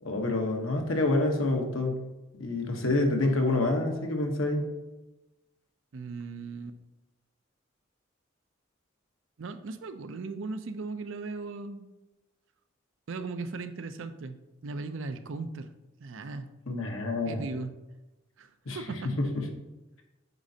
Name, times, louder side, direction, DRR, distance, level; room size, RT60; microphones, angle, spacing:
voice 1, 0.0-2.0 2.4-4.7 16.7-17.4 18.7-18.8 19.0-19.5, left 2 dB, 85° left, 2 dB, 1.0 m, -27 dB
voice 2, 5.9-6.8 9.4-11.9 13.1-14.4 14.6-15.7 16.0-16.5 17.2-17.8 18.4-18.5 18.7-19.2, right 3 dB, 70° right, 10 dB, 0.5 m, -37 dB
8.1 x 5.1 x 2.8 m, 1.1 s
head